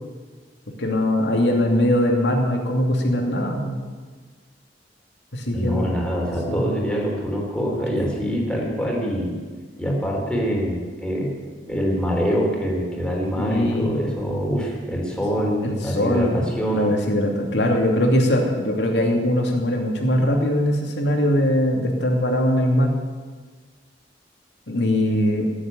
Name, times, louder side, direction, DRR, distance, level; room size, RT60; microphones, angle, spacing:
voice 1, 0.8-3.8 5.3-5.9 6.5-6.7 13.4-13.9 15.6-22.9 24.7-25.5, left 1 dB, 80° left, 1 dB, 2.8 m, -21 dB
voice 2, 5.5-9.4 9.8-11.3 11.7-17.1, equal, 5° left, -2 dB, 3.6 m, -25 dB
15.5 x 8.0 x 9.3 m, 1.5 s
head